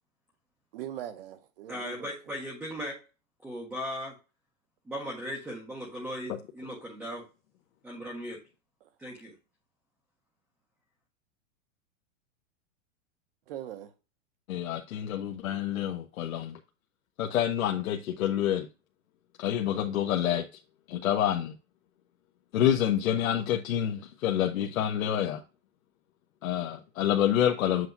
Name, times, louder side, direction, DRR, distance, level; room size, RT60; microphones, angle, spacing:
voice 1, 0.7-2.4 8.8-8.9 13.5-13.9, right 11 dB, 45° right, 0.7 m, -41 dB
voice 2, 1.7-3.0 3.4-4.2 4.9-7.2 7.8-8.4 9.0-9.3, equal, ahead, 0.5 m, -37 dB
voice 3, 14.5-16.6 17.2-18.7 19.4-20.5 20.9-21.5 22.5-25.4 26.4-27.9, left 10 dB, 90° left, 1.0 m, -27 dB
7.8 x 2.7 x 5.8 m
supercardioid pair, 175°, 40 cm